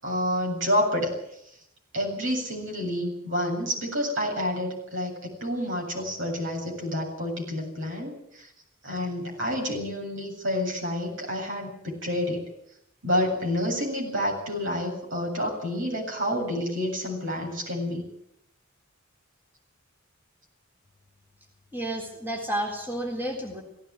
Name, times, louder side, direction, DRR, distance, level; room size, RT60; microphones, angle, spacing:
voice 1, 0.0-1.1 1.9-8.5 8.8-12.4 13.0-18.1, left 1 dB, 65° right, -1 dB, 7.9 m, -29 dB
voice 2, 21.7-23.6, right 1 dB, 10° right, -1 dB, 3.7 m, -31 dB
17.5 x 17.5 x 9.8 m, 0.76 s
head